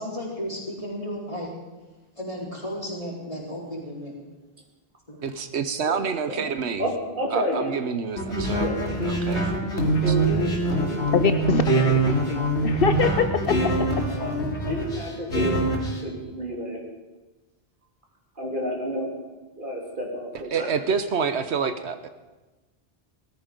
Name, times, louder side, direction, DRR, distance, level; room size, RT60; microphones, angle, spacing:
voice 1, 0.0-1.5 2.2-4.1 5.1-5.2, equal, 30° left, -3 dB, 4.0 m, -34 dB
voice 2, 5.2-6.9 7.3-8.7 9.1-10.1 20.5-22.1, right 6 dB, 75° right, 10 dB, 1.1 m, -28 dB
voice 3, 6.8-7.8 8.6-8.8 10.0-11.4 14.1-15.7 16.0-16.8 18.4-19.1 19.5-20.7, equal, 50° right, -1 dB, 3.3 m, -30 dB
sound 1, 8.2-16.0, right 2 dB, 85° left, 2.8 m, -24 dB
voice 4, 11.1-13.6, left 7 dB, 60° left, 10 dB, 0.8 m, -24 dB
sound 2, 12.4-13.6, equal, 20° right, 3.2 m, -34 dB
18.5 x 14.0 x 5.2 m, 1.2 s
omnidirectional pair, 1.1 m